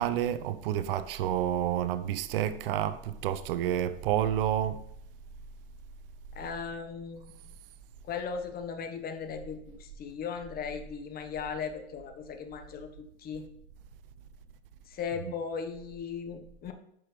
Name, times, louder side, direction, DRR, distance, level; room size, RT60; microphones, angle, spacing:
voice 1, 0.0-4.8, right 10 dB, 60° right, 0.7 m, -29 dB
voice 2, 6.3-7.4 8.0-13.4 14.9-16.7, left 6 dB, 30° left, 1.1 m, -37 dB
10.5 x 6.2 x 3.2 m
hypercardioid pair, 105°, 32 cm